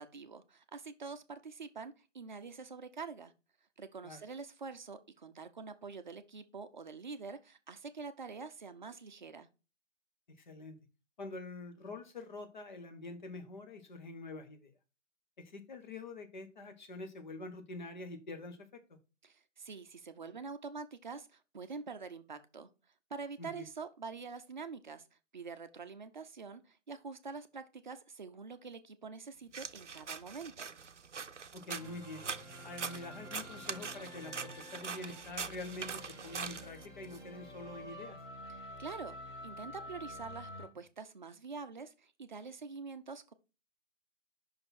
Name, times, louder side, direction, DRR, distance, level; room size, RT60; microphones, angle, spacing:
voice 1, 0.0-3.3 3.8-9.5 19.2-22.7 23.1-25.1 25.3-30.7 38.8-39.2 39.4-43.3, right 4 dB, 40° right, 0.7 m, -46 dB
voice 2, 10.5-10.8 11.2-14.7 15.4-19.0 23.4-23.7 31.5-32.2 32.6-38.2, left 2 dB, 40° left, 1.3 m, -46 dB
sound 1, 29.5-37.2, right 5 dB, 70° right, 0.7 m, -43 dB
sound 2, 31.8-40.7, left 1 dB, 15° left, 1.4 m, -49 dB
5.8 x 5.2 x 4.2 m
figure-of-eight pair, 145°, 37 cm